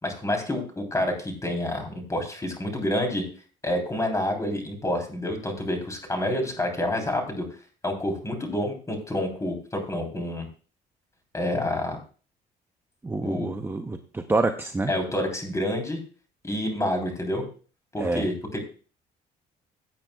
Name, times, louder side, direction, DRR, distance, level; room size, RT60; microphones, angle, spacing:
voice 1, 0.0-3.2 3.6-7.4 7.8-10.5 11.3-12.0 13.2-13.5 14.9-16.0 16.4-17.4 17.9-18.6, left 1 dB, 20° left, 4 dB, 3.4 m, -28 dB
voice 2, 13.0-14.9 18.0-18.3, right 3 dB, 10° right, 6 dB, 0.7 m, -27 dB
16.5 x 8.5 x 2.3 m, 0.38 s
cardioid pair, 110°, 17 cm